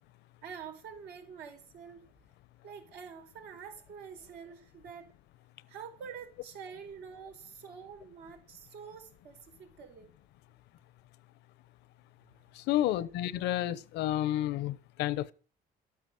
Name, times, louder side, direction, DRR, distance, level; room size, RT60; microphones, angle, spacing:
voice 1, 0.4-2.1 2.6-5.1 5.7-10.1 12.3-12.4 12.8-13.1, right 7 dB, 75° right, 4.5 m, -47 dB
voice 2, 12.5-15.3, left 13 dB, 85° left, 0.9 m, -30 dB
12.5 x 9.4 x 7.7 m
cardioid pair, 110°, 17 cm